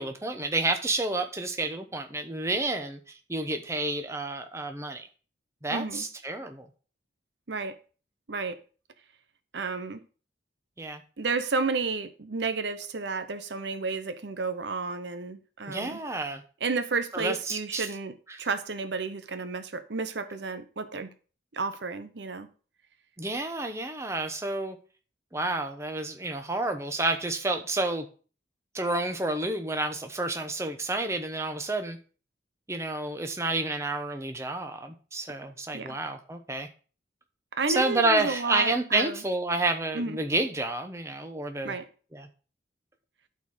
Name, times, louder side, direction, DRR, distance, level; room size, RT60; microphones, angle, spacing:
voice 1, 0.0-5.1 5.6-6.7 10.8-11.0 15.7-16.4 17.1-17.9 18.3-18.4 23.2-24.8 25.3-28.1 28.7-32.0 32.7-36.7 37.7-41.7 42.1-42.3, right 2 dB, 15° right, 0.9 m, -30 dB
voice 2, 5.7-6.0 7.5-7.8 8.3-8.6 9.5-10.0 11.2-16.0 16.6-18.1 18.4-21.1 21.5-22.5 35.7-36.0 37.5-39.2 39.9-40.2 41.6-41.9, right 4 dB, 75° right, 0.8 m, -31 dB
12.0 x 4.4 x 4.9 m
head